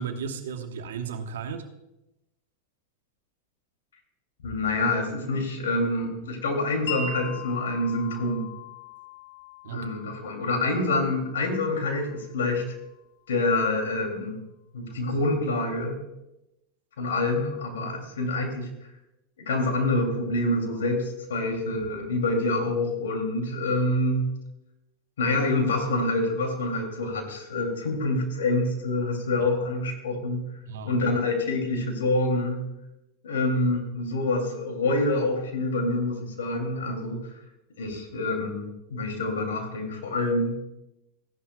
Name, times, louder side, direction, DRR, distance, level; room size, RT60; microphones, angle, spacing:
voice 1, 0.0-1.7 9.6-9.9 29.4-29.5 30.7-31.0, right 6 dB, 85° right, 6 dB, 1.1 m, -34 dB
voice 2, 4.4-8.5 9.7-12.7 13.3-14.4 14.7-16.0 17.0-18.7 19.4-24.3 25.2-30.4 30.8-32.6 33.2-37.2 37.8-40.6, left 2 dB, 85° left, 3 dB, 2.5 m, -26 dB
Wind chime, 6.9-12.9, left 5 dB, 70° left, 1.6 m, -40 dB
15.0 x 11.0 x 2.2 m, 0.91 s
hypercardioid pair, 105°, 0 cm